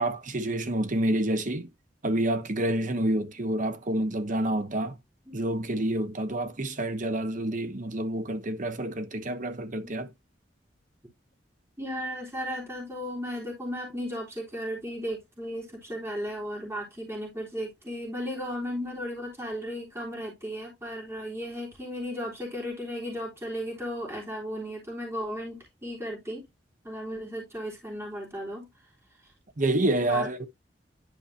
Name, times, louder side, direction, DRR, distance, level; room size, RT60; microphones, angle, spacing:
voice 1, 0.0-1.7 2.0-4.9 5.3-10.1 29.6-30.5, right 1 dB, 45° right, 1.2 m, -28 dB
voice 2, 11.8-26.4 26.8-28.7 30.0-30.3, equal, 15° right, 3.6 m, -35 dB
11.0 x 4.9 x 2.8 m
head